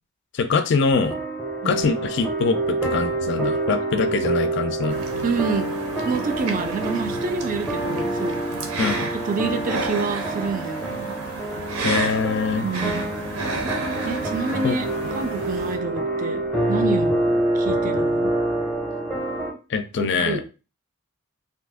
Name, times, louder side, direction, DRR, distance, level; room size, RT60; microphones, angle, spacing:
voice 1, 0.3-1.2 1.6-5.0 8.8-9.1 11.8-12.7 14.6-14.8 19.7-20.4, left 4 dB, 50° left, 9 dB, 0.4 m, -23 dB
sound 1, 0.9-19.5, right 1 dB, ahead, 0.6 m, -27 dB
sound 2, 4.9-15.8, right 3 dB, 85° right, 0.6 m, -32 dB
voice 2, 5.2-5.7 6.0-8.4 9.2-11.2 12.5-13.1 14.0-16.4 16.7-17.2 17.5-18.3 20.0-20.4, right 4 dB, 35° right, 8 dB, 0.4 m, -28 dB
2.7 x 2.4 x 3.5 m, 0.32 s
head